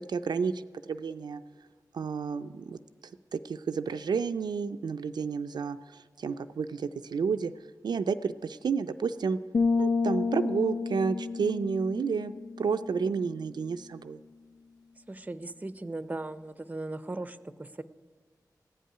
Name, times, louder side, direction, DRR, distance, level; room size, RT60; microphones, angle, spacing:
voice 1, 0.0-1.4 1.9-2.8 3.3-7.5 7.8-9.4 9.8-12.3 12.6-14.2, right 5 dB, 85° right, 9 dB, 0.4 m, -31 dB
sound 1, 9.5-13.3, left 4 dB, 70° left, 0.4 m, -30 dB
voice 2, 15.1-17.8, right 2 dB, 20° right, 13 dB, 0.6 m, -38 dB
15.0 x 5.5 x 9.9 m, 1.5 s
cardioid pair, 55°, 7 cm